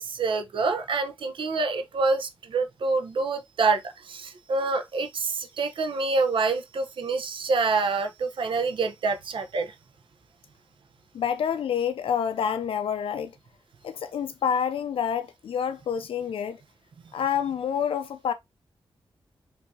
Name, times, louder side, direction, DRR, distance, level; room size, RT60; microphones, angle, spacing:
voice 1, 0.0-9.7, right 4 dB, 65° right, 0.7 m, -27 dB
voice 2, 11.1-13.3 13.8-16.6 17.1-18.3, left 8 dB, 80° left, 0.4 m, -28 dB
5.3 x 2.6 x 2.6 m
wide cardioid pair, 175°, 9 cm